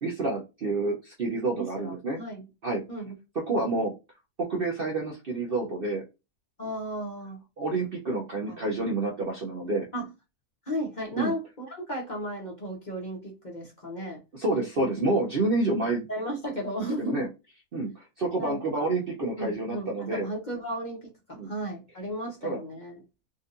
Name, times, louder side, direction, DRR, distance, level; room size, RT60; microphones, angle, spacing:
voice 1, 0.0-2.2 2.6-2.8 3.5-3.9 4.4-6.0 7.6-9.9 11.2-11.3 14.3-16.0 17.0-17.3 17.7-20.3 21.4-21.5 22.4-22.6, right 2 dB, 50° right, 0.7 m, -28 dB
voice 2, 1.5-2.5 2.9-3.1 6.6-7.4 8.5-8.6 9.9-10.1 10.7-14.2 16.1-17.2 18.4-18.8 19.4-23.0, equal, 35° left, 1.0 m, -34 dB
3.9 x 2.6 x 2.5 m
omnidirectional pair, 1.6 m